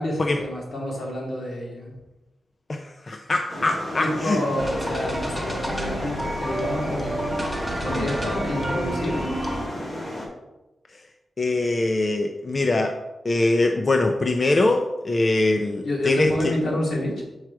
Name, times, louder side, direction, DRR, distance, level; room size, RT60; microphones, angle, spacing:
voice 1, 0.0-1.9 4.0-7.1 7.8-9.4 15.8-17.2, left 1 dB, 65° left, -2 dB, 2.1 m, -28 dB
voice 2, 2.7-4.4 11.4-13.0 13.2-16.3, left 2 dB, 30° left, 4 dB, 0.4 m, -22 dB
sound 1, 3.5-10.3, left 1 dB, 50° left, 2.0 m, -34 dB
sound 2, 4.6-9.7, right 1 dB, 10° left, 1.0 m, -29 dB
6.0 x 4.7 x 4.6 m, 1.0 s
wide cardioid pair, 155°, 0 cm